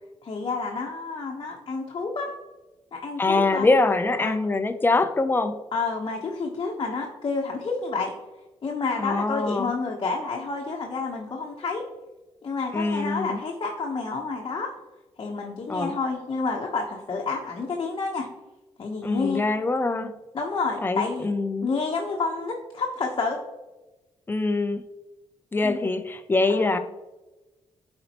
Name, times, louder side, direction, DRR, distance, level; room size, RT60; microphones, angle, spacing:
voice 1, 0.2-2.3 2.9-3.7 4.2-4.4 5.7-8.1 8.6-11.8 12.4-14.7 15.2-18.3 18.8-19.4 20.3-21.3 21.6-23.4 25.6-25.8 26.5-26.8, left 4 dB, 45° left, 0 dB, 1.0 m, -29 dB
voice 2, 3.2-5.5 9.0-9.8 12.7-13.4 15.7-15.9 19.0-20.1 20.8-21.7 24.3-24.8 25.5-26.8, left 3 dB, 20° left, 8 dB, 0.6 m, -24 dB
10.5 x 4.4 x 3.0 m, 1.1 s
cardioid pair, 95°, 11 cm